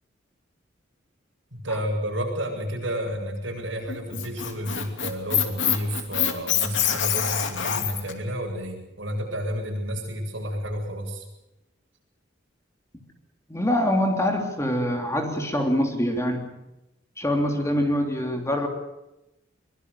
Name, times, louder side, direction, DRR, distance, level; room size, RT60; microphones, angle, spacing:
voice 1, 1.5-11.3, equal, 70° right, 1 dB, 7.9 m, -31 dB
Squeak, 3.9-8.1, left 9 dB, 75° left, 2.8 m, -25 dB
voice 2, 13.5-16.5 17.2-18.7, left 1 dB, 15° left, 3 dB, 3.2 m, -24 dB
24.0 x 22.0 x 7.0 m, 0.92 s
head